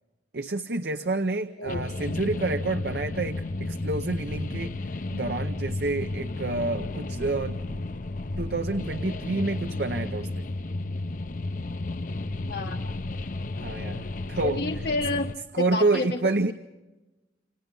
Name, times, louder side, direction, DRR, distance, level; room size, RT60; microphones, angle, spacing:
voice 1, 0.3-4.7 5.1-7.8 8.4-10.5 13.6-14.7 15.5-16.5, right 3 dB, 65° right, 8 dB, 0.8 m, -28 dB
sound 1, 1.7-15.4, left 2 dB, 45° left, 0.7 m, -33 dB
voice 2, 12.5-12.9 14.4-15.3 15.6-16.2, left 2 dB, 65° left, 3 dB, 1.1 m, -29 dB
29.0 x 26.0 x 3.9 m, 1.1 s
head